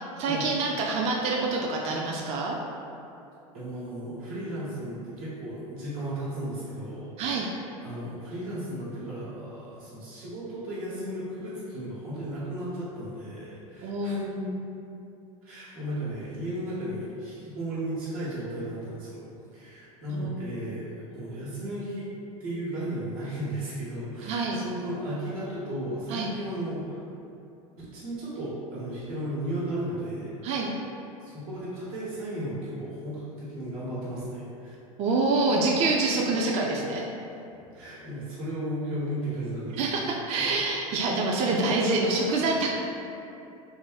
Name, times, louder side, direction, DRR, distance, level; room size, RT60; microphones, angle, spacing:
voice 1, 0.0-2.6 7.2-7.5 13.8-14.6 20.1-20.5 24.2-24.6 26.1-26.3 30.4-30.7 35.0-37.0 39.8-42.7, right 3 dB, 35° right, -1 dB, 0.4 m, -26 dB
voice 2, 3.5-7.4 7.8-14.1 15.4-19.2 19.5-22.1 22.4-27.0 27.8-30.3 31.2-34.7 37.7-39.8 40.4-40.6 41.0-41.1 41.5-41.6, right 1 dB, 75° right, -9 dB, 1.2 m, -35 dB
2.5 x 2.1 x 3.9 m, 2.7 s
hypercardioid pair, 85°, 18 cm